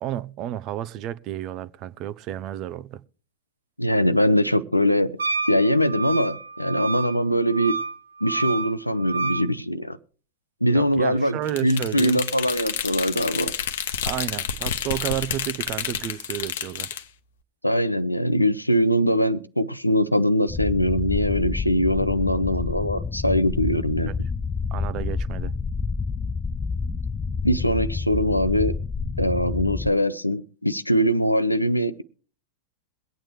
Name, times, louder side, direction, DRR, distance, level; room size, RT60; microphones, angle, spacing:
voice 1, 0.0-3.0 10.7-12.2 14.0-17.0 24.1-24.2 24.7-25.5, right 12 dB, 40° right, 0.6 m, -31 dB
voice 2, 3.8-5.2 5.5-7.7 8.2-10.0 10.6-13.5 17.6-24.1 27.4-28.8 29.2-32.0, equal, 90° left, 0.6 m, -22 dB
Wind instrument woodwind instrument, 5.2-9.5, right 4 dB, 75° right, 1.0 m, -29 dB
sound 1, 11.5-17.0, left 9 dB, 60° left, 0.9 m, -29 dB
sound 2, 20.5-29.9, left 5 dB, 20° left, 0.5 m, -29 dB
23.0 x 8.8 x 3.1 m
figure-of-eight pair, 90°, 0 cm